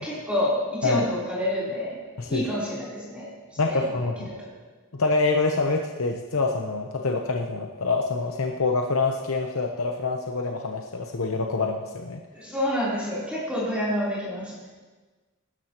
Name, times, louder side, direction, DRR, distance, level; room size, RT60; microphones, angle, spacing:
voice 1, 0.0-2.0 2.3-3.3 3.7-4.5 12.3-14.5, left 1 dB, 5° right, -9 dB, 3.6 m, -28 dB
voice 2, 3.6-4.4 5.0-12.2, left 3 dB, 70° left, 2 dB, 0.9 m, -26 dB
19.5 x 12.5 x 3.0 m, 1.3 s
head